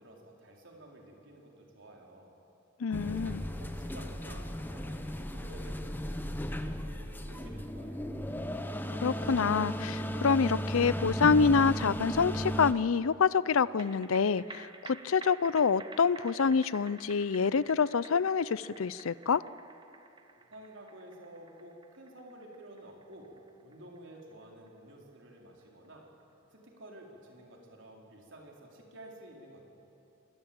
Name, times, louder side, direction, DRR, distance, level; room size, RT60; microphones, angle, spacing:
voice 1, 0.0-2.3 3.0-8.2 20.4-23.3 23.6-26.1 26.5-29.6, right 1 dB, 60° right, 0 dB, 4.4 m, -51 dB
voice 2, 2.8-3.4 9.0-19.4, left 5 dB, 75° left, 19 dB, 0.5 m, -27 dB
sound 1, 2.9-12.7, equal, 10° left, 1.0 m, -35 dB
sound 2, 13.6-26.2 26.6-26.7, right 4 dB, 20° right, 1.2 m, -52 dB
26.5 x 20.0 x 8.9 m, 2.9 s
head